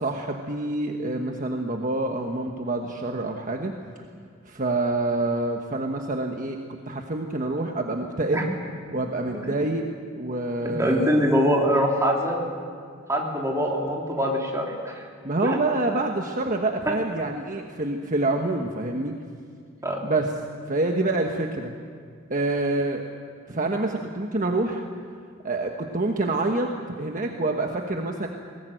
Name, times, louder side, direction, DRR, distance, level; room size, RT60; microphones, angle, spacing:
voice 1, 0.0-3.7 4.4-6.6 6.9-8.4 8.9-9.8 10.2-11.1 15.2-19.1 20.0-20.3 20.7-21.7 22.3-23.0 23.5-24.8 25.4-26.7 27.0-28.3, right 2 dB, 40° right, 3 dB, 1.3 m, -26 dB
voice 2, 10.8-12.4 13.1-15.1 15.4-15.6 19.8-20.0 23.5-23.6, equal, 15° right, -1 dB, 3.4 m, -23 dB
21.5 x 18.5 x 9.1 m, 2.1 s
head